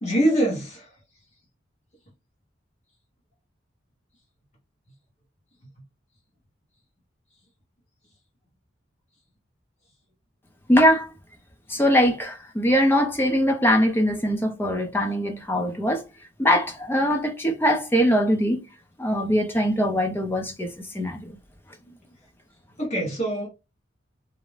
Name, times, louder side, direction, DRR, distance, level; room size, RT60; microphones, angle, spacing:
voice 1, 0.0-0.9 22.8-23.5, right 1 dB, 35° left, 0.8 m, -24 dB
voice 2, 10.7-11.1 11.7-16.0 16.4-18.6 19.0-21.4, equal, 10° left, 0.4 m, -22 dB
2.4 x 2.0 x 3.1 m
head